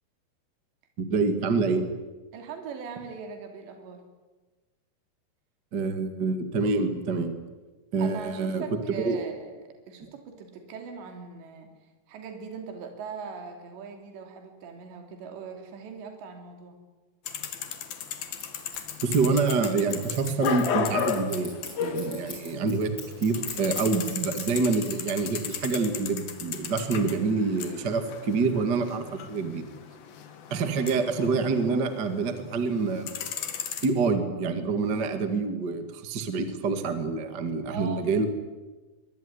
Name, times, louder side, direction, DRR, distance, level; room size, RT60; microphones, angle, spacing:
voice 1, 1.0-1.9 5.7-7.3 7.9-8.6 9.0-9.2 19.0-21.5 21.8-22.9 23.2-29.6 30.5-33.1 33.8-38.3, right 4 dB, 40° right, 8 dB, 1.4 m, -26 dB
voice 2, 2.3-4.0 8.0-11.7 12.1-16.8 37.7-38.1, right 6 dB, 65° right, 5 dB, 5.1 m, -40 dB
sound 1, 17.3-22.7 23.0-32.3 32.7-33.9, left 7 dB, 60° left, 3.3 m, -35 dB
Scissors, 18.4-24.6 24.8-26.1, left 2 dB, 20° left, 8.4 m, -42 dB
23.5 x 22.5 x 9.8 m, 1.2 s
omnidirectional pair, 5.5 m